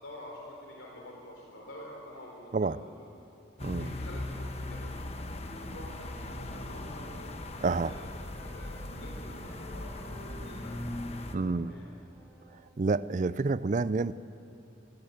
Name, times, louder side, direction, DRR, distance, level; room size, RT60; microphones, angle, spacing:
voice 1, 0.0-3.0 3.7-4.9 5.2-7.1 7.8-8.2 8.4-11.9, left 1 dB, 85° left, -2 dB, 3.7 m, -48 dB
sound 1, 3.6-11.3, left 1 dB, 35° left, 1.1 m, -39 dB
Wind instrument woodwind instrument, 4.3-8.1 8.3-12.7, left 1 dB, 5° left, 2.5 m, -55 dB
voice 2, 7.6-7.9 11.3-11.7 12.8-14.1, right 3 dB, 40° right, 17 dB, 0.4 m, -28 dB
24.0 x 17.5 x 7.9 m, 2.8 s
head